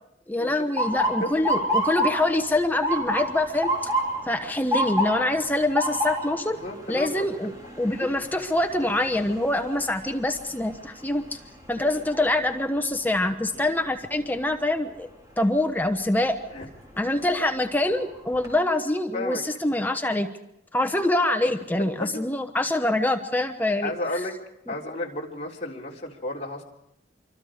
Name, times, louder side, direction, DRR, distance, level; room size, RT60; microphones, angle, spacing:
voice 1, 0.3-3.9 4.2-6.6 6.9-7.5 7.8-11.4 11.7-15.1 15.4-16.4 17.0-20.3 20.7-24.3 24.7-24.8, left 1 dB, 10° left, 6 dB, 0.9 m, -25 dB
Motor vehicle (road) / Siren, 0.8-12.7 13.1-13.6 14.3-14.6 16.5-16.8 17.3-17.4 17.8-18.5, equal, 20° right, 3.4 m, -29 dB
voice 2, 6.6-7.3 11.8-12.0 13.5-13.7 16.5-16.6 19.1-19.4 22.0-22.1 23.8-24.3 24.7-26.6, left 1 dB, 35° left, -3 dB, 3.4 m, -32 dB
26.5 x 24.0 x 5.0 m, 0.82 s
head